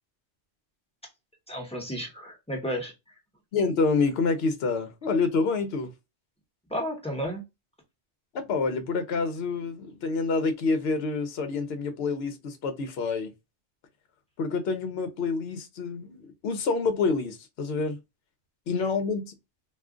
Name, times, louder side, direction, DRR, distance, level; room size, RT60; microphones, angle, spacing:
voice 1, 1.5-2.9 6.7-7.4, equal, 5° left, 0.9 m, -32 dB
voice 2, 3.5-5.9 8.3-13.3 14.4-18.0 18.7-19.3, left 4 dB, 65° left, 0.9 m, -27 dB
2.4 x 2.3 x 3.6 m
omnidirectional pair, 1.2 m